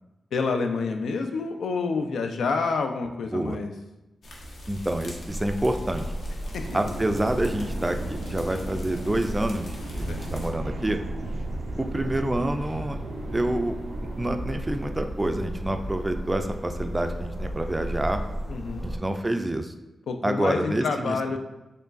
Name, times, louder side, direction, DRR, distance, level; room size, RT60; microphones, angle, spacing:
voice 1, 0.3-3.7 6.5-6.6 10.1-10.3 18.5-18.9 20.1-21.4, left 4 dB, 85° left, 5 dB, 0.3 m, -28 dB
sound 1, 4.2-10.5, equal, 70° left, 0.8 m, -41 dB
voice 2, 4.7-6.1 6.7-11.0 11.8-13.0 13.3-13.8 14.2-18.2 18.8-19.7 20.2-21.4, right 1 dB, 20° right, 6 dB, 0.3 m, -27 dB
sound 2, 5.3-19.0, equal, 45° left, 0.9 m, -35 dB
sound 3, 6.5-15.5, right 2 dB, 85° right, 0.4 m, -38 dB
4.4 x 3.0 x 2.5 m, 1.0 s
cardioid pair, 80°, 0 cm